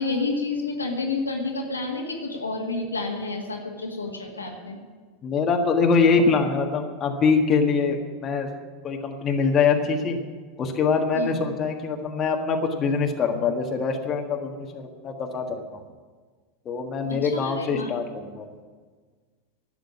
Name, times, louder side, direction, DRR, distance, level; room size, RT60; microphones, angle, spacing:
voice 1, 0.0-4.8 11.1-11.3 17.1-17.9, left 3 dB, 90° left, 0 dB, 1.9 m, -29 dB
voice 2, 5.2-8.5 8.8-10.2 10.6-15.8 16.6-18.6, left 5 dB, 35° left, 3 dB, 1.6 m, -24 dB
12.0 x 8.1 x 9.8 m, 1.5 s
figure-of-eight pair, 85°, 0 cm